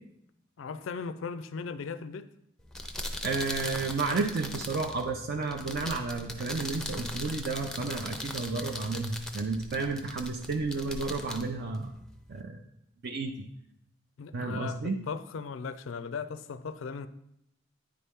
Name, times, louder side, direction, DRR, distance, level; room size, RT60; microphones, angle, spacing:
voice 1, 0.6-2.3 14.2-14.8 15.1-17.1, left 5 dB, 75° left, 0.4 m, -37 dB
sound 1, 2.6-12.4, left 1 dB, 5° left, 0.5 m, -40 dB
voice 2, 3.2-11.9 12.3-12.6 13.0-13.3 14.3-15.0, right 3 dB, 55° right, 0.5 m, -32 dB
9.4 x 4.2 x 3.5 m
head